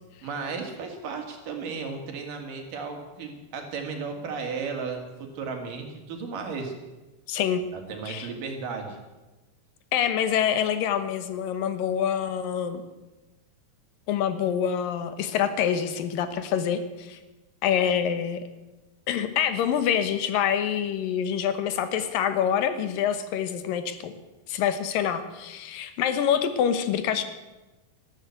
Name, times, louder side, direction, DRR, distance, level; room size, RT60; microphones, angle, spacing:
voice 1, 0.2-6.7 7.7-9.0, right 5 dB, 75° right, 4 dB, 3.9 m, -34 dB
voice 2, 7.3-7.6 8.1-8.3 9.9-12.8 14.1-17.2 17.6-18.4 19.1-24.1 24.5-27.2, left 8 dB, 85° left, 10 dB, 2.9 m, -26 dB
13.5 x 12.5 x 8.2 m, 1.1 s
omnidirectional pair, 3.9 m